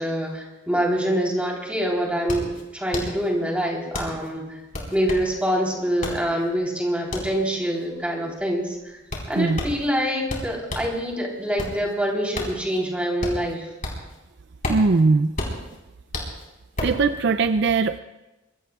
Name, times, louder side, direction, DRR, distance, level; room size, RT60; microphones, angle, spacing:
voice 1, 0.0-4.6 4.9-9.0 9.3-13.7, equal, 5° right, -1 dB, 3.6 m, -25 dB
sound 1, 1.3-1.4 1.7-11.0 11.4-14.2 14.5-17.1, left 1 dB, 45° left, 4.3 m, -32 dB
voice 2, 14.7-15.3 16.8-18.0, right 4 dB, 60° right, 11 dB, 0.5 m, -20 dB
25.5 x 22.0 x 2.4 m, 1.0 s
head